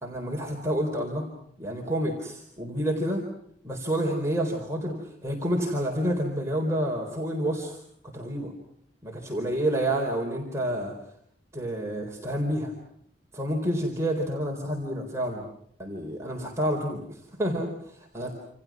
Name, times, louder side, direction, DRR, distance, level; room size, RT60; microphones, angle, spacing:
voice 1, 0.0-1.3 1.6-3.2 3.6-8.5 9.0-10.9 11.5-12.7 13.3-15.5 15.8-18.3, right 1 dB, 15° right, 0 dB, 4.1 m, -29 dB
28.5 x 28.0 x 6.2 m, 0.67 s
head